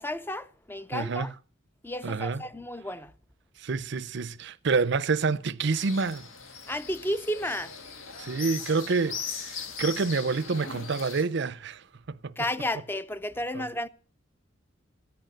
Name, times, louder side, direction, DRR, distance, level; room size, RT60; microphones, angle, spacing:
voice 1, 0.0-1.3 1.8-3.1 6.7-7.8 12.4-13.9, left 1 dB, 10° left, 0.6 m, -32 dB
voice 2, 0.9-1.3 2.0-2.4 3.6-6.2 8.2-12.3 13.5-13.6, right 4 dB, 60° right, 0.6 m, -28 dB
sound 1, 5.7-11.2, left 6 dB, 85° left, 1.8 m, -39 dB
14.5 x 9.2 x 7.6 m
head